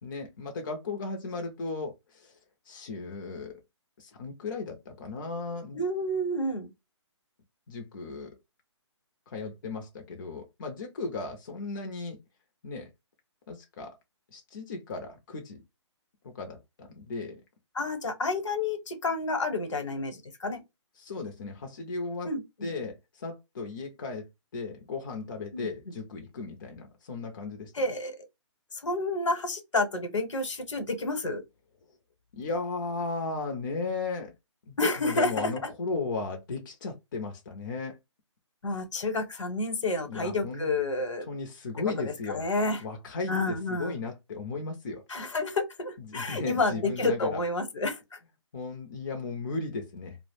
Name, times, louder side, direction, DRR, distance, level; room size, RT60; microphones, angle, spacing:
voice 1, 0.0-2.3 2.7-3.5 4.0-5.8 7.7-8.3 9.3-12.2 12.6-12.9 13.5-13.9 14.3-15.6 16.2-17.4 21.0-22.3 22.6-24.3 24.5-27.7 32.3-34.3 34.7-38.0 40.1-40.7 41.3-42.4 42.8-45.0 46.0-47.4 48.5-50.2, left 3 dB, 45° left, 0.5 m, -36 dB
voice 2, 5.7-6.7 17.7-20.6 22.2-22.7 25.5-25.9 27.7-28.2 28.7-31.4 34.8-35.5 38.6-41.2 41.9-42.8 43.3-44.0 45.1-48.0, left 2 dB, 75° left, 0.9 m, -30 dB
2.3 x 2.0 x 2.9 m
hypercardioid pair, 160°, 16 cm